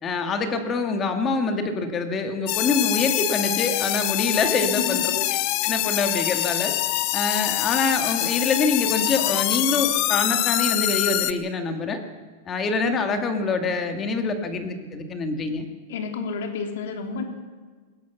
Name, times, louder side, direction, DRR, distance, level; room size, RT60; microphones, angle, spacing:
voice 1, 0.0-5.2 5.6-6.7 7.1-12.0 12.5-15.7, left 4 dB, 20° left, 6 dB, 2.0 m, -25 dB
sound 1, 2.5-11.3, left 16 dB, 40° left, 0.9 m, -25 dB
voice 2, 4.6-5.0 5.2-5.3 15.9-17.2, left 5 dB, 65° left, 4 dB, 3.4 m, -30 dB
20.5 x 18.0 x 7.2 m, 1.5 s
supercardioid pair, 165°, 0 cm